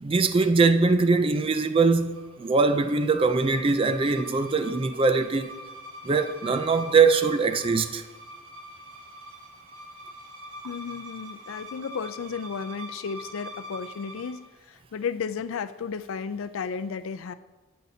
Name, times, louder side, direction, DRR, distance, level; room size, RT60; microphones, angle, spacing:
voice 1, 0.0-5.5 6.0-8.0, right 4 dB, 25° right, 0.4 m, -22 dB
sound 1, 2.0-14.5, equal, 85° right, 1.0 m, -43 dB
voice 2, 10.6-14.4 14.7-17.3, left 6 dB, 80° left, 0.4 m, -33 dB
12.0 x 8.5 x 2.7 m
head